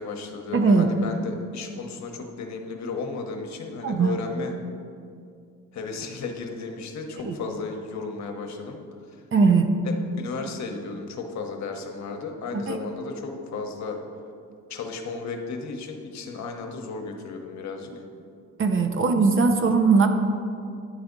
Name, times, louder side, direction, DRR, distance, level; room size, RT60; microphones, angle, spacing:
voice 1, 0.0-4.5 5.7-8.8 9.1-9.2 9.8-14.0 14.7-17.9, left 4 dB, 65° left, 3 dB, 1.0 m, -34 dB
voice 2, 0.5-0.9 3.8-4.1 7.2-7.4 9.3-9.7 12.5-12.8 18.6-20.1, right 4 dB, 45° right, 6 dB, 0.7 m, -20 dB
9.8 x 3.5 x 5.2 m, 2.4 s
cardioid pair, 90°, 30 cm